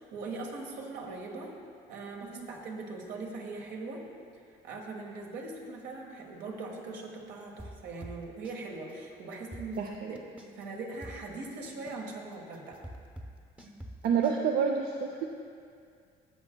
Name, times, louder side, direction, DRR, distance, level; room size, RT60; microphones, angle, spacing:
voice 1, 0.0-1.5 1.9-4.0 4.6-10.2 10.5-12.8, right 3 dB, 80° right, 0 dB, 1.5 m, -41 dB
sound 1, 7.6-8.6 8.9-9.0 9.3-10.6 11.0-14.4, equal, 10° right, 0.7 m, -45 dB
voice 2, 9.8-10.1 14.0-15.2, right 6 dB, 65° right, 2 dB, 0.6 m, -28 dB
14.0 x 7.8 x 2.2 m, 2.2 s
cardioid pair, 110°, 17 cm